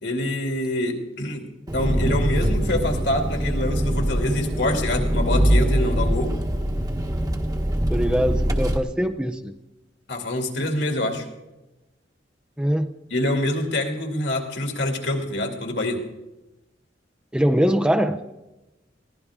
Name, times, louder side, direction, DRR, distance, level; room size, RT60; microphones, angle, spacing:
voice 1, 0.0-1.5 1.7-6.3 10.1-11.3 13.1-16.0, left 1 dB, 70° left, 3 dB, 2.5 m, -25 dB
Engine, 1.7-8.8, equal, 20° right, 1.2 m, -23 dB
voice 2, 7.9-9.5 12.6-12.9 17.3-18.2, equal, 5° right, 6 dB, 0.6 m, -22 dB
21.5 x 16.0 x 3.6 m, 1.0 s
head